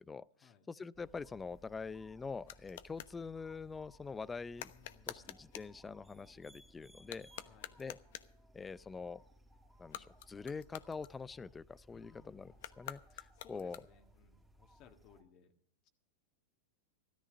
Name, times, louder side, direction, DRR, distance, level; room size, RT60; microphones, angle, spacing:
voice 1, 0.0-4.7 5.1-7.3 7.8-8.0 8.5-9.2 9.8-13.8, left 4 dB, 15° left, 20 dB, 0.5 m, -45 dB
sound 1, 0.9-15.2, equal, 5° right, 2.4 m, -63 dB
Teeth Snapping, 1.4-3.2 4.5-5.8 7.0-8.4 9.8-11.6 12.5-14.2, left 13 dB, 65° left, 1.0 m, -50 dB
voice 2, 4.7-5.4 7.5-7.7 11.9-12.6 13.1-15.5 15.8-15.9, left 7 dB, 45° left, 5 dB, 1.6 m, -63 dB
13.5 x 13.5 x 5.1 m, 0.62 s
hypercardioid pair, 125°, 0 cm